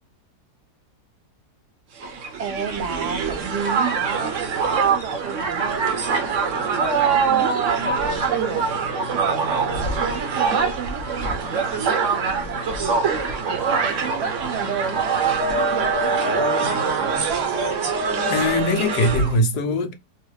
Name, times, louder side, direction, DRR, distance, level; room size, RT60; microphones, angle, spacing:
voice 1, 1.9-4.4 4.8-17.9, right 6 dB, 85° right, 1.2 m, -32 dB
Crowd, 2.0-19.4, right 5 dB, 55° right, 1.0 m, -23 dB
voice 2, 18.3-19.9, left 1 dB, 75° left, 1.2 m, -21 dB
3.1 x 2.4 x 3.0 m
omnidirectional pair, 1.8 m